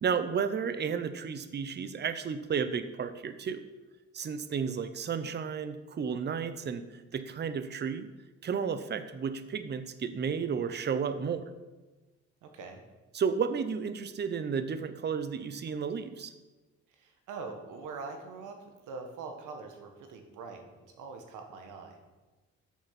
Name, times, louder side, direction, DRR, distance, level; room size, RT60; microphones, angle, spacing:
voice 1, 0.0-3.6 4.1-8.1 8.4-11.4 13.1-16.3, right 6 dB, 35° right, 10 dB, 0.7 m, -32 dB
voice 2, 12.4-12.8 16.9-22.0, right 4 dB, 90° right, 4 dB, 1.4 m, -43 dB
6.6 x 6.4 x 5.9 m, 1.2 s
cardioid pair, 90°, 30 cm